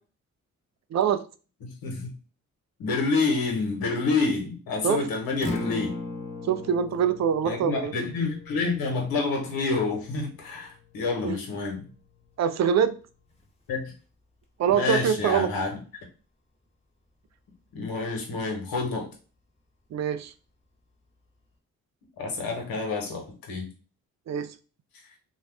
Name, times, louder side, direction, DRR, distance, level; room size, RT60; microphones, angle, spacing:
voice 1, 0.9-1.2 4.8-5.1 6.4-7.9 11.2-11.4 12.4-13.0 14.6-15.5 19.9-20.3 24.3-24.5, right 8 dB, 50° right, 12 dB, 0.5 m, -24 dB
voice 2, 1.6-2.1 2.8-5.9 7.4-11.9 13.7-13.9 14.7-15.8 17.7-19.1 22.2-23.7, left 4 dB, 75° left, 1 dB, 1.2 m, -28 dB
Acoustic guitar, 5.3-13.5, left 2 dB, 15° left, 1.1 m, -40 dB
2.6 x 2.3 x 3.3 m, 0.35 s
hypercardioid pair, 45°, 37 cm